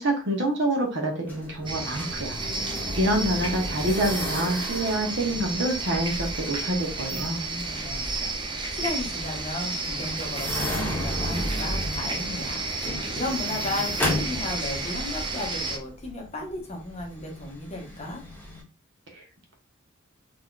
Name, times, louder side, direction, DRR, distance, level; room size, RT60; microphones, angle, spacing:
voice 1, 0.0-2.4 3.0-7.4, right 1 dB, 65° right, 1 dB, 1.1 m, -26 dB
sound 1, 1.3-18.6, left 1 dB, 10° left, 1.1 m, -35 dB
sound 2, 1.7-15.8, right 3 dB, 25° right, 0.6 m, -32 dB
voice 2, 7.1-12.6 13.1-18.2, left 2 dB, 35° left, 0 dB, 1.1 m, -34 dB
3.8 x 3.0 x 2.4 m, 0.32 s
head